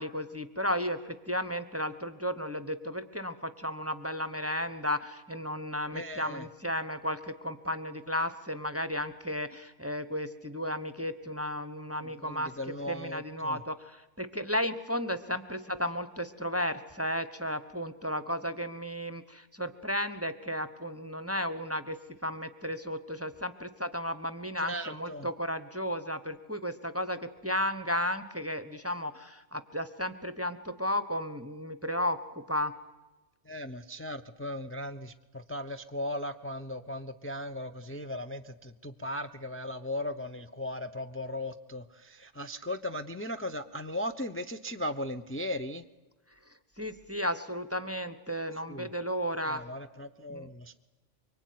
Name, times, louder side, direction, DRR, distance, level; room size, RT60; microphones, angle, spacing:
voice 1, 0.0-12.5 12.9-32.7 46.8-49.6 50.3-50.5, equal, 10° right, 11 dB, 1.1 m, -34 dB
voice 2, 5.9-6.4 12.2-13.6 24.7-25.3 33.5-45.8 48.7-48.9 49.5-50.8, left 1 dB, 10° left, 10 dB, 0.8 m, -37 dB
24.5 x 24.0 x 9.5 m, 1.0 s
omnidirectional pair, 1.3 m